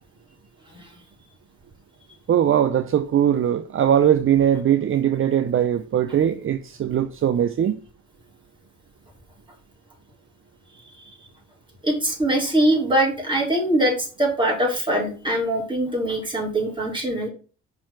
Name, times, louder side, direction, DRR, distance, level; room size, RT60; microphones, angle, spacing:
voice 1, 2.3-7.8, right 9 dB, 45° right, 0.6 m, -20 dB
voice 2, 11.8-17.3, right 1 dB, 15° right, 4.1 m, -22 dB
5.7 x 4.8 x 6.0 m
cardioid pair, 90°, 30 cm